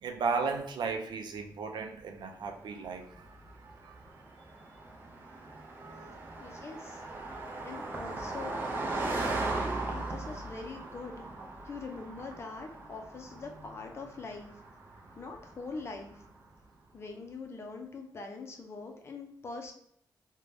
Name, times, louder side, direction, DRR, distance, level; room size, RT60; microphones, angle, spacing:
voice 1, 0.0-4.0 5.5-6.2 7.1-7.9, right 4 dB, 85° right, 5 dB, 0.4 m, -37 dB
Car passing by, 2.6-16.3, right 2 dB, 30° right, 0.4 m, -39 dB
voice 2, 6.4-7.0 7.6-8.6 9.9-11.2 11.6-14.5 15.2-16.1 16.9-19.7, left 4 dB, 35° left, 3 dB, 0.5 m, -43 dB
2.6 x 2.2 x 3.2 m, 0.69 s
wide cardioid pair, 170°, 8 cm